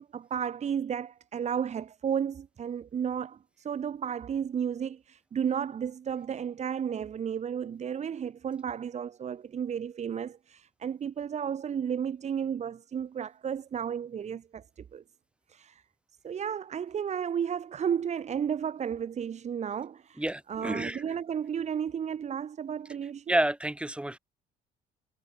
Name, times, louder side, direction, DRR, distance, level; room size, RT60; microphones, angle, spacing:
voice 1, 0.0-15.0 15.5-15.8 16.2-20.2 20.5-23.4, right 8 dB, 40° right, 2.2 m, -33 dB
voice 2, 20.2-21.0 23.3-24.2, right 1 dB, 5° right, 1.9 m, -29 dB
cardioid pair, 110°, 17 cm